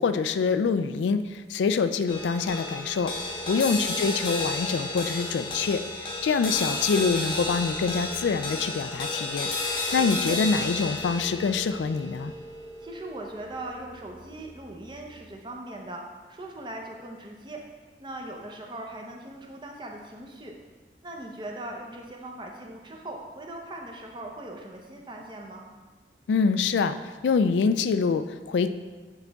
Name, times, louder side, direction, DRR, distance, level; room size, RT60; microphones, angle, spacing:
voice 1, 0.0-3.1 3.5-12.3 26.3-27.0 27.2-28.7, left 5 dB, 85° left, 10 dB, 0.3 m, -25 dB
sound 1, 2.1-14.6, left 2 dB, 30° left, 0.8 m, -33 dB
voice 2, 3.5-3.8 6.5-6.8 10.0-10.4 12.8-17.6 18.0-20.5 21.0-25.6, right 1 dB, 25° right, 0 dB, 0.7 m, -40 dB
8.2 x 4.0 x 3.5 m, 1.3 s
head